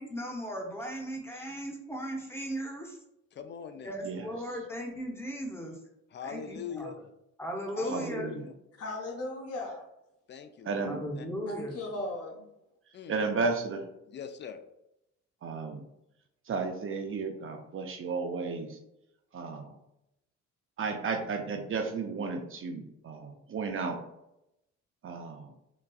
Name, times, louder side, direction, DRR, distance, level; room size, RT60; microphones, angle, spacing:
voice 1, 0.0-3.0 3.8-5.8 6.2-6.9 7.4-8.3 10.8-11.8, equal, 10° left, 0 dB, 0.8 m, -37 dB
voice 2, 3.3-4.0 6.1-7.0 7.7-8.5 10.3-10.9 11.2-11.3 12.9-13.2 14.1-14.6, left 7 dB, 40° left, 9 dB, 0.4 m, -41 dB
voice 3, 7.8-8.5 10.6-11.0 13.1-13.8 15.4-15.8 16.5-18.8 19.3-19.7 20.8-24.0 25.0-25.5, right 4 dB, 45° right, 4 dB, 0.6 m, -33 dB
voice 4, 8.8-9.8 11.5-12.4, left 2 dB, 55° left, 0 dB, 0.8 m, -37 dB
3.9 x 2.3 x 2.3 m, 0.84 s
cardioid pair, 90°, 30 cm